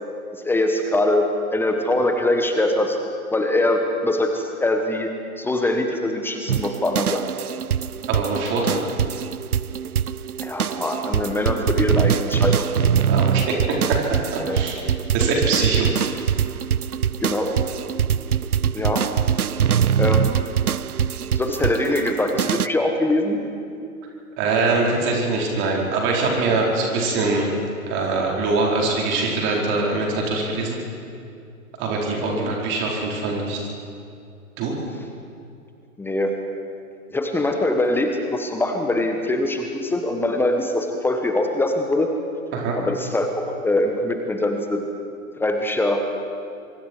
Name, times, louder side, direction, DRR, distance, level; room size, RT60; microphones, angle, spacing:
voice 1, 0.4-3.0 3.3-5.1 5.4-7.2 10.4-12.7 14.4-14.6 17.2-17.5 18.7-19.0 20.0-20.5 21.3-23.4 26.5-26.6 32.3-32.5 36.0-36.4 37.1-42.1 42.8-44.8 45.4-46.0, left 1 dB, 5° left, 4 dB, 1.2 m, -23 dB
sound 1, 6.5-22.7, right 8 dB, 90° right, 0.6 m, -23 dB
voice 2, 8.1-8.8 13.1-14.9 15.1-15.9 24.4-27.4 27.9-30.8 31.8-33.6 34.6-34.7 42.5-42.8, right 3 dB, 25° right, -2 dB, 4.8 m, -23 dB
24.5 x 24.5 x 4.8 m, 2.5 s
figure-of-eight pair, 120°, 43 cm